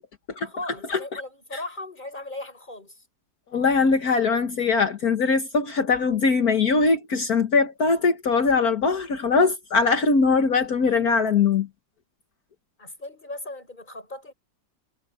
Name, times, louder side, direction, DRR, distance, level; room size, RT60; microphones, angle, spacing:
voice 1, 0.5-3.1 12.8-14.3, left 2 dB, 25° left, 6.7 m, -37 dB
voice 2, 3.5-11.7, left 4 dB, 55° left, 1.8 m, -21 dB
omnidirectional pair, 2.0 m